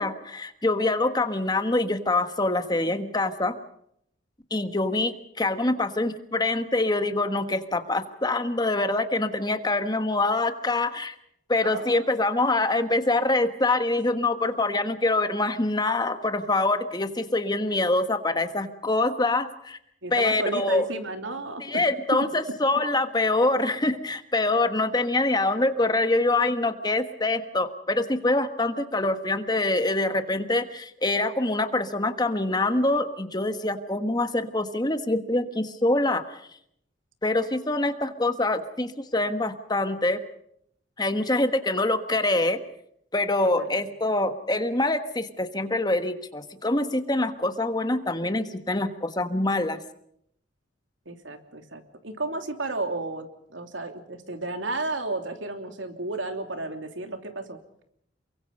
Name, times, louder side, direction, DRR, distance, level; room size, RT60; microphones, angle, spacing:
voice 1, 0.0-3.5 4.5-11.1 11.5-19.8 20.1-20.8 21.6-36.2 37.2-40.2 41.0-42.6 43.1-49.8, left 2 dB, 20° left, 9 dB, 1.4 m, -25 dB
voice 2, 11.6-12.1 20.0-21.9 22.2-22.3 43.4-43.8 51.0-57.6, right 2 dB, 85° right, 6 dB, 3.1 m, -33 dB
28.5 x 23.0 x 5.4 m, 0.71 s
head